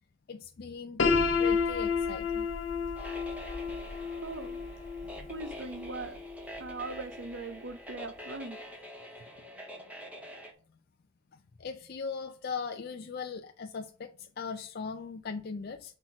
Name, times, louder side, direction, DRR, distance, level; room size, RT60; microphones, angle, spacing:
voice 1, 0.3-1.0 1.4-2.5 5.2-5.3 9.0-9.4 11.3-16.0, left 5 dB, 45° left, 0.4 m, -39 dB
Piano, 1.0-6.8, left 5 dB, 60° left, 0.9 m, -31 dB
sound 1, 3.0-10.5, equal, 5° right, 1.0 m, -46 dB
voice 2, 4.0-4.6 5.3-6.2 6.6-8.6, right 3 dB, 60° right, 0.6 m, -40 dB
5.9 x 4.3 x 4.7 m
head